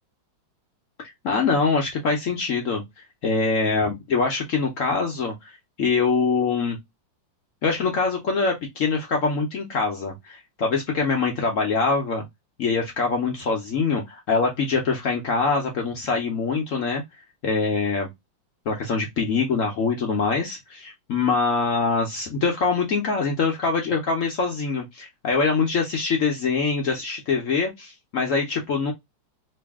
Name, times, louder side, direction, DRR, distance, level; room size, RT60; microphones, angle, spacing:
voice 1, 1.0-2.8 3.2-5.3 5.8-6.8 7.6-12.2 12.6-17.0 17.4-18.1 18.7-28.9, left 4 dB, 60° left, 0.8 m, -24 dB
3.1 x 2.6 x 3.4 m
omnidirectional pair, 2.0 m